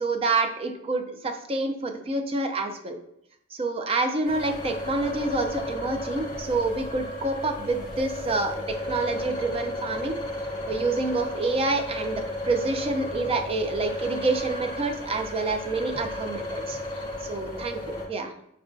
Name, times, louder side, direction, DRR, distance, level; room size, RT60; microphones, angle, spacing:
voice 1, 0.0-3.0 3.6-10.1 10.7-16.8 17.3-18.3, right 3 dB, 30° right, 6 dB, 0.4 m, -28 dB
sound 1, 4.2-18.1, left 1 dB, 25° left, 0.6 m, -34 dB
4.5 x 2.1 x 2.5 m, 0.76 s
head